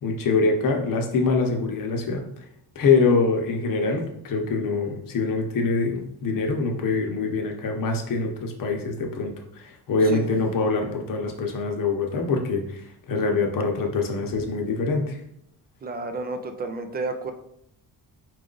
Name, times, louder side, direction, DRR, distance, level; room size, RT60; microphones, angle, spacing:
voice 1, 0.0-2.2 2.7-15.2, left 4 dB, 55° left, 2 dB, 0.8 m, -24 dB
voice 2, 15.8-17.3, right 3 dB, 25° right, 7 dB, 0.4 m, -31 dB
4.6 x 2.4 x 3.8 m, 0.74 s
cardioid pair, 140°, 40 cm